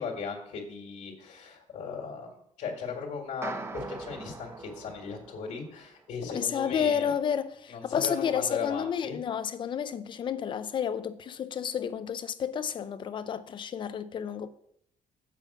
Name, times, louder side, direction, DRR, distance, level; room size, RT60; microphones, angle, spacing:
voice 1, 0.0-2.3 2.6-7.1 7.7-9.2, left 5 dB, 70° left, 1.9 m, -37 dB
sound 1, 3.4-5.9, right 2 dB, 20° right, 0.5 m, -41 dB
voice 2, 6.3-14.5, left 8 dB, 35° left, 0.5 m, -31 dB
7.5 x 5.2 x 7.1 m
cardioid pair, 180°, 14 cm